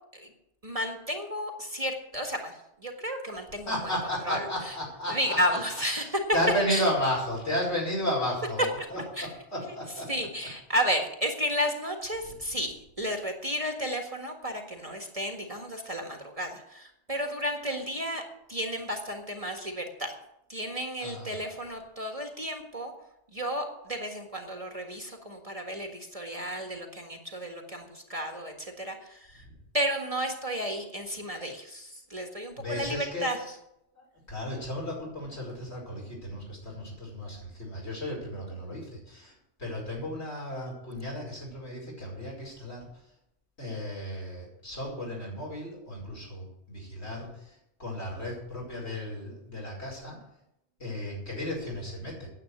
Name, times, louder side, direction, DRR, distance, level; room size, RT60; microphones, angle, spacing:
voice 1, 0.6-3.7 4.3-4.8 5.1-6.2 6.7-6.8 9.2-9.3 10.1-18.2 18.5-20.1 20.5-22.9 23.3-29.4 29.7-33.5, equal, 30° right, 3 dB, 1.8 m, -32 dB
voice 2, 3.7-5.6 6.0-10.1 21.0-21.5 32.6-33.3 34.0-39.3 39.6-42.9 43.6-47.3 47.8-50.2 50.8-52.3, equal, 65° left, -2 dB, 5.4 m, -33 dB
9.8 x 8.4 x 9.6 m, 0.81 s
omnidirectional pair, 1.2 m